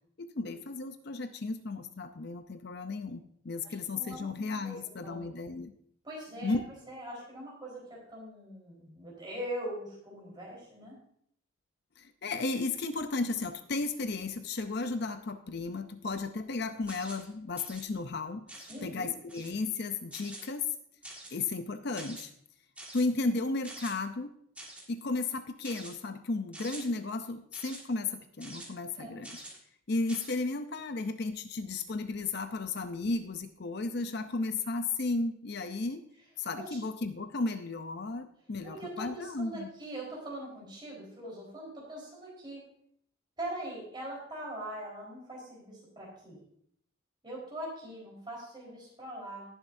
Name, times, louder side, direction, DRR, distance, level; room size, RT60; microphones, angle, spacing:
voice 1, 0.2-5.7 6.4-6.6 12.0-20.7 21.3-22.3 22.9-24.3 24.9-29.4 29.9-36.0 36.4-39.7, left 3 dB, 50° left, 8 dB, 0.6 m, -34 dB
voice 2, 3.6-4.3 4.6-4.8 5.0-5.3 6.0-10.9 18.7-19.1 29.0-29.2 38.6-42.6 43.4-46.4 47.2-49.5, right 1 dB, 20° right, -4 dB, 4.2 m, -42 dB
sound 1, 16.9-17.3 17.5-17.8 18.5-18.8 19.3-19.6 20.1-20.5 21.0-21.4 21.9-22.2 22.8-23.0 23.6-23.9 24.5-24.8 25.6-25.9 26.5-26.8 27.5-27.8 28.4-28.7 29.2-29.6 30.1-30.3, right 1 dB, 5° right, 1.9 m, -46 dB
18.0 x 7.2 x 2.7 m, 0.68 s
head